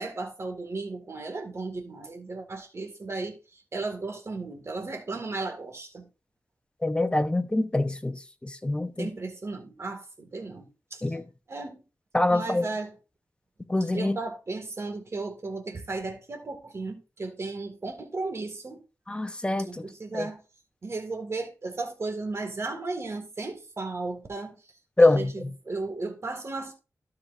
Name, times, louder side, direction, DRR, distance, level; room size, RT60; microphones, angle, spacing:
voice 1, 0.0-6.1 9.0-11.2 11.5-11.8 12.3-12.9 13.9-18.8 19.6-20.4 20.8-24.6 25.0-26.7, right 3 dB, 50° right, 2.0 m, -35 dB
voice 2, 6.8-9.1 11.0-11.2 12.1-12.7 13.7-14.2 19.1-19.8 20.1-20.3 25.0-25.5, left 2 dB, 15° left, 0.9 m, -25 dB
12.5 x 6.3 x 2.6 m
wide cardioid pair, 75°, 6 cm